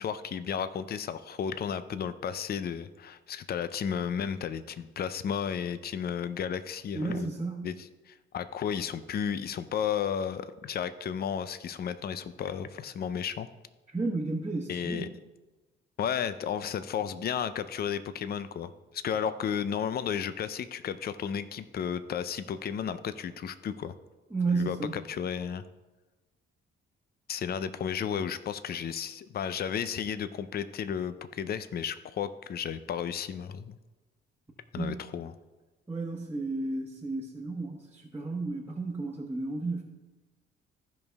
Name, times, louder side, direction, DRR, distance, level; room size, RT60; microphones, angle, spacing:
voice 1, 0.0-7.3 7.6-13.5 14.7-15.1 16.0-23.9 24.5-25.6 27.3-33.8 34.7-35.3, left 8 dB, 50° left, 13 dB, 0.6 m, -33 dB
voice 2, 6.9-7.7 13.9-15.1 24.3-24.9 34.8-35.1 35.9-39.8, right 3 dB, 10° right, -4 dB, 1.2 m, -32 dB
14.5 x 5.3 x 3.5 m, 1.2 s
cardioid pair, 90°, 20 cm